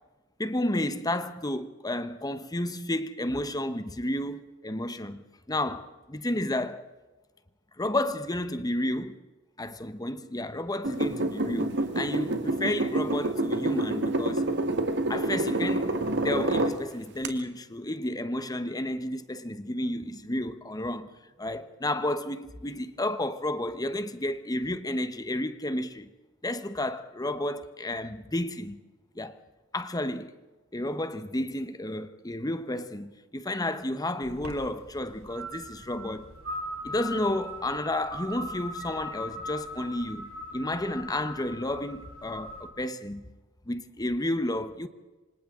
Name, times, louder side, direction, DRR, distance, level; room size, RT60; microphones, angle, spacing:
voice 1, 0.4-6.8 7.8-9.2 9.6-14.5 15.1-15.9 16.2-21.1 21.4-26.1 26.4-28.8 29.1-29.4 29.7-30.3 30.7-36.3 36.8-43.3 43.7-44.9, left 1 dB, 20° left, 1.1 m, -31 dB
sound 1, 10.8-16.8 17.2-17.3, right 2 dB, 60° right, 1.7 m, -27 dB
sound 2, 34.2-42.7, left 1 dB, 80° right, 3.6 m, -40 dB
28.0 x 25.5 x 3.8 m
head